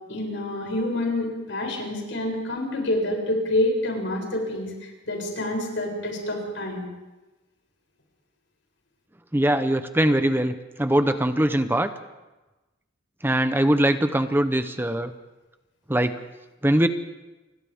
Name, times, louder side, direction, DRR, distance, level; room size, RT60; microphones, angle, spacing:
voice 1, 0.1-6.8, left 1 dB, 75° left, 0 dB, 7.4 m, -27 dB
voice 2, 9.3-11.9 13.2-15.1 15.9-16.1 16.6-16.9, right 1 dB, 10° right, 9 dB, 0.8 m, -22 dB
30.0 x 25.5 x 3.6 m, 1.1 s
head